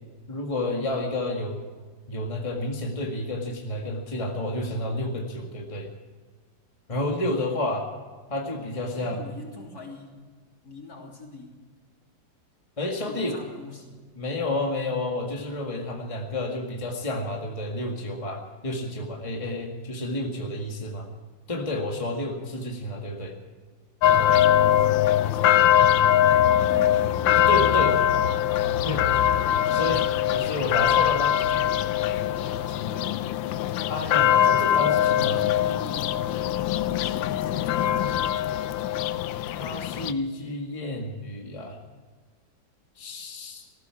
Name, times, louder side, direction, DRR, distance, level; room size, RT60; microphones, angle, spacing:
voice 1, 0.3-1.6 2.1-5.9 6.9-7.9 8.3-9.2 12.8-13.4 14.2-21.1 21.5-23.3 27.4-27.9 28.9-29.2 29.7-31.4 33.9-35.4 39.6-41.8 43.0-43.7, left 1 dB, 20° left, 0 dB, 1.9 m, -30 dB
voice 2, 8.9-10.2 10.6-11.6 13.1-14.0 25.1-25.7 26.3-29.6 32.3-33.1 34.2-34.9 35.3-38.4, left 1 dB, 50° left, 0 dB, 3.6 m, -42 dB
sound 1, 24.0-40.1, left 11 dB, 85° left, 1.4 m, -22 dB
19.5 x 15.5 x 4.7 m, 1.4 s
omnidirectional pair, 2.0 m